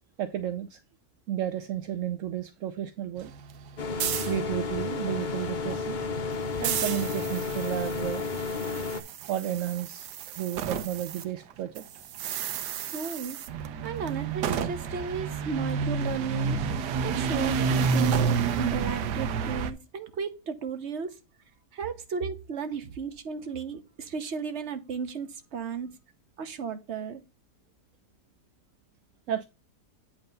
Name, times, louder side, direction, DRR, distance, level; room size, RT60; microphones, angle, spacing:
voice 1, 0.2-0.8 1.3-3.3 4.3-6.0 6.6-8.2 9.3-10.1 10.4-11.8 29.3-29.5, right 10 dB, 65° right, 0.8 m, -32 dB
sound 1, 3.2-11.2 11.5-19.7, right 6 dB, 80° right, 1.3 m, -31 dB
sound 2, 3.8-9.0, left 4 dB, 70° left, 0.4 m, -32 dB
voice 2, 12.8-13.4 13.8-16.6 17.0-21.2 21.7-25.9 26.4-27.2, right 6 dB, 45° right, 1.2 m, -34 dB
8.8 x 3.3 x 5.3 m
omnidirectional pair, 1.8 m